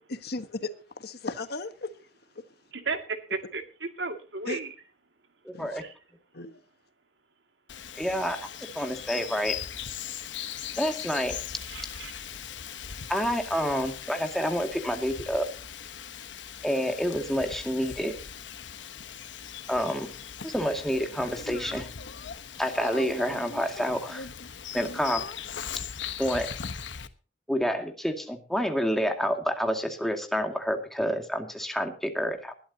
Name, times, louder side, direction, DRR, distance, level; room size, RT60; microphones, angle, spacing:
voice 1, 0.2-0.7 1.0-1.9 2.4-2.5 4.5-4.6 5.5-5.8 6.3-6.6, left 3 dB, 60° left, 1.3 m, -35 dB
voice 2, 2.7-4.7 5.8-5.9 11.7-12.1, right 3 dB, 75° right, 2.2 m, -34 dB
voice 3, 5.4-5.8 8.0-8.4 8.7-9.6 10.8-11.4 13.1-15.5 16.6-18.1 19.7-20.1 20.4-21.9 22.6-24.3 24.7-25.2 26.2-26.5 27.5-32.5, equal, ahead, 2.2 m, -28 dB
Bird vocalization bird call bird song, 7.7-27.1, left 8 dB, 85° left, 1.1 m, -39 dB
21.0 x 12.0 x 2.8 m
head